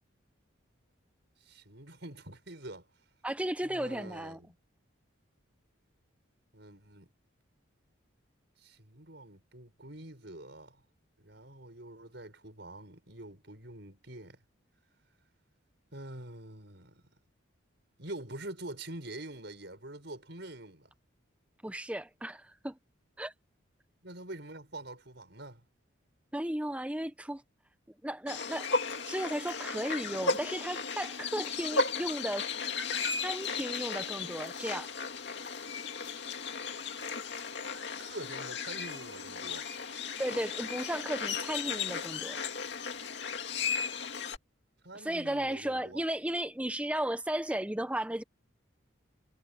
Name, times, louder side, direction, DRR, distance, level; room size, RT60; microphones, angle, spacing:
voice 1, 1.4-2.9 3.6-4.5 6.5-7.1 8.6-10.8 11.2-14.4 15.9-17.0 18.0-20.9 24.0-25.6 38.0-39.7 44.8-46.0, right 1 dB, 55° right, 7.0 m, -45 dB
voice 2, 3.2-4.4 21.6-22.8 23.2-23.3 26.3-27.4 28.0-28.7 29.1-32.5 33.2-34.9 40.2-42.4 44.9-48.2, right 1 dB, 5° right, 0.7 m, -35 dB
sound 1, 28.3-44.4, left 4 dB, 60° left, 2.4 m, -35 dB
head